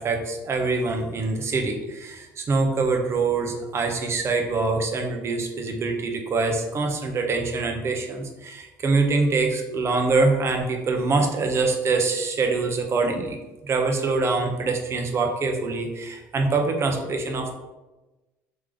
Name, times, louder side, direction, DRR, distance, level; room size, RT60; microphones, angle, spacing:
voice 1, 0.0-17.5, right 3 dB, 40° right, 3 dB, 0.8 m, -24 dB
3.4 x 3.2 x 3.7 m, 1.1 s
supercardioid pair, 90°, 7 cm